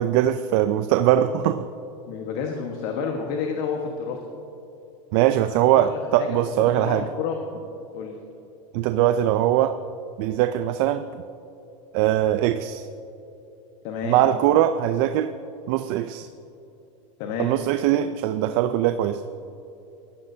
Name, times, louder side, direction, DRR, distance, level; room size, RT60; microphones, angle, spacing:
voice 1, 0.0-1.7 5.1-7.1 8.7-9.8 10.2-11.1 11.9-12.9 14.0-15.3 15.7-16.3 17.4-19.2, right 12 dB, 55° right, 10 dB, 0.5 m, -21 dB
voice 2, 2.1-4.2 5.5-7.6 7.9-8.2 13.8-14.3 17.2-17.5, left 6 dB, 55° left, 2 dB, 1.4 m, -30 dB
19.5 x 13.5 x 2.8 m, 2.9 s
supercardioid pair, 135°, 17 cm